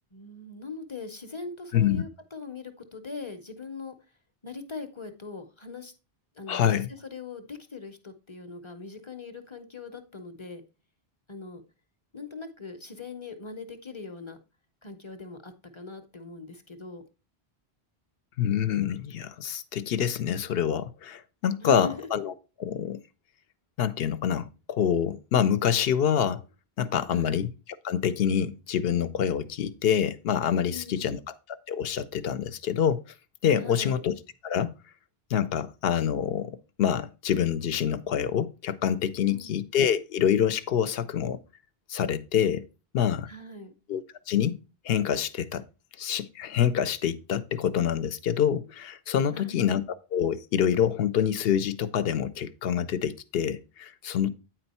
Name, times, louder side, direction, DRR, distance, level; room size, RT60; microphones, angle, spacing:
voice 1, 0.1-3.9 4.4-5.9 6.3-10.6 11.3-11.6 12.1-14.4 14.8-17.0 21.6-22.1 27.1-27.4 30.7-31.2 33.6-34.0 39.3-39.6 43.3-43.7 49.3-49.7 54.2-54.3, left 4 dB, 30° left, 0.7 m, -41 dB
voice 2, 1.7-2.0 6.5-6.9 18.4-22.3 22.6-23.0 23.8-26.4 26.8-27.5 27.8-31.3 31.7-33.0 33.4-34.1 34.4-34.7 35.3-41.4 41.9-42.6 42.9-43.3 43.9-45.6 46.0-49.8 50.1-54.3, left 8 dB, 70° left, 0.8 m, -26 dB
9.0 x 4.4 x 4.1 m
omnidirectional pair, 1.1 m